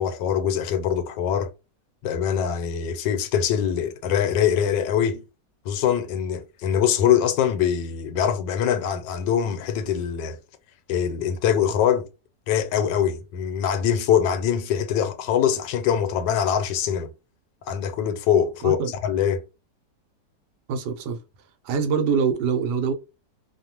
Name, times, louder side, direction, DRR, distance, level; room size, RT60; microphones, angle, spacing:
voice 1, 0.0-1.5 2.0-5.2 5.6-10.4 10.9-12.1 12.5-17.1 17.7-19.4, left 9 dB, 80° left, 1.2 m, -23 dB
voice 2, 20.7-21.2 21.6-22.9, right 6 dB, 75° right, 1.2 m, -24 dB
3.0 x 2.1 x 2.8 m
omnidirectional pair, 1.9 m